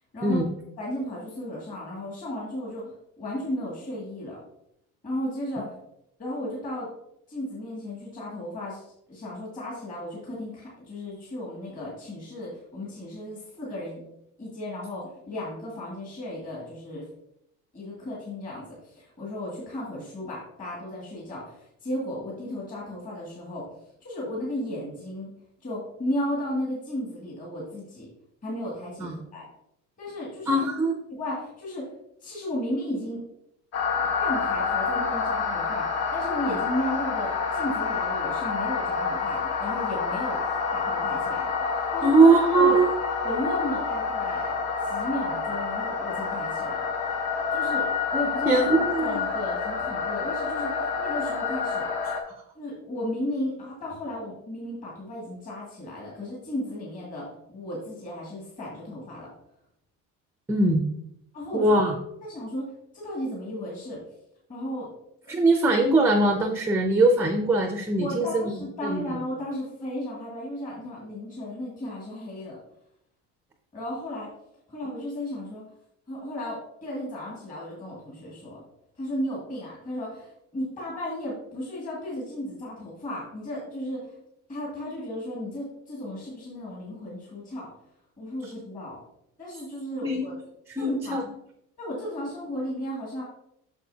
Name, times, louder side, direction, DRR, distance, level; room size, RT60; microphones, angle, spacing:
voice 1, 0.8-4.4 5.0-5.8 6.2-6.9 7.3-14.0 14.4-17.1 17.7-23.7 24.0-25.3 25.6-28.1 28.4-29.4 30.0-30.7 31.1-31.9 32.2-33.2 34.0-40.4 40.7-42.8 43.2-44.6 44.8-46.8 47.5-51.9 52.6-59.3 61.3-61.8 62.2-64.0 64.5-64.9 65.2-65.3 68.0-72.6 73.7-74.3 74.7-75.6 76.1-78.6 79.0-84.2 84.5-87.7 88.2-89.0 89.4-90.3 90.8-91.2 91.8-93.2, left 1 dB, 25° left, -5 dB, 2.2 m, -34 dB
voice 2, 30.5-30.9 42.0-43.0 48.5-49.2 60.5-60.8 61.5-62.0 65.3-68.5 68.8-69.2 88.4-88.5 90.0-90.2 90.8-91.2, right 2 dB, 10° right, 5 dB, 0.4 m, -21 dB
sound 1, 33.7-52.2, left 5 dB, 55° left, 1.3 m, -28 dB
8.4 x 6.4 x 2.8 m, 0.76 s
cardioid pair, 170°, 31 cm